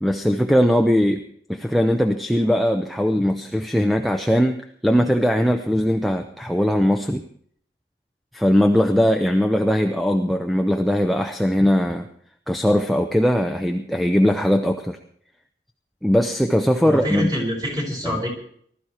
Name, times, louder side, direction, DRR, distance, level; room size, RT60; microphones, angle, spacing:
voice 1, 0.0-1.2 1.5-7.2 8.3-12.1 12.5-15.0 16.0-17.3 18.0-18.2, equal, ahead, 4 dB, 0.7 m, -20 dB
voice 2, 16.8-18.3, equal, 20° right, 0 dB, 4.8 m, -25 dB
20.0 x 13.0 x 4.5 m, 0.63 s
head